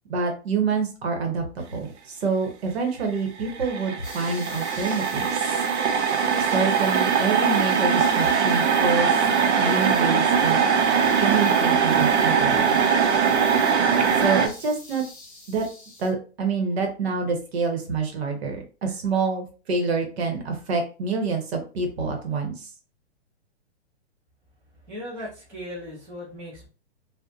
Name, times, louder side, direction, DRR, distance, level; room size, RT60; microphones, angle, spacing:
voice 1, 0.1-5.5 6.5-9.1 9.6-10.6 11.2-12.8 14.2-15.0 15.5-15.7 16.0-22.7, right 4 dB, 65° right, 3 dB, 1.0 m, -27 dB
sound 1, 3.2-3.3 3.5-14.5, right 6 dB, 80° right, 0.6 m, -21 dB
sound 2, 4.0-16.1, left 2 dB, 25° left, 1.0 m, -42 dB
voice 2, 24.8-26.7, left 1 dB, 5° right, -9 dB, 0.4 m, -37 dB
2.6 x 2.1 x 2.4 m, 0.35 s
hypercardioid pair, 150°, 34 cm